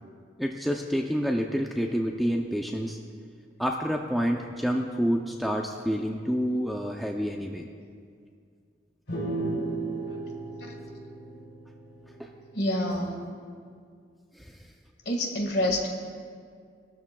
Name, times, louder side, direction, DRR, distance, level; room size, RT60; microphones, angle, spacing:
voice 1, 0.4-3.0 3.6-7.7 12.2-12.3 14.3-14.6, equal, ahead, 1 dB, 0.5 m, -28 dB
sound 1, 9.1-12.6, right 2 dB, 75° left, 3.3 m, -34 dB
voice 2, 12.5-13.2 15.0-15.9, left 1 dB, 55° left, 1 dB, 1.8 m, -28 dB
20.0 x 13.0 x 2.3 m, 2.1 s
head